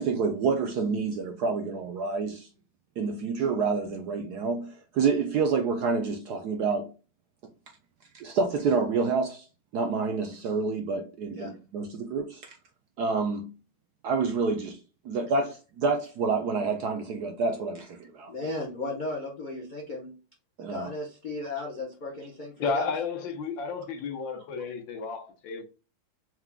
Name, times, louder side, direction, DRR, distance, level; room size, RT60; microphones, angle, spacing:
voice 1, 0.0-2.5 3.0-6.9 8.1-9.5 9.7-12.6 13.0-13.5 14.0-14.8 15.0-18.3 20.6-20.9, right 4 dB, 70° right, 1.0 m, -28 dB
voice 2, 18.3-20.1 20.7-22.9, left 2 dB, 55° left, 0.5 m, -35 dB
voice 3, 22.6-25.6, left 4 dB, 70° left, 1.5 m, -32 dB
4.7 x 3.5 x 2.2 m
omnidirectional pair, 2.2 m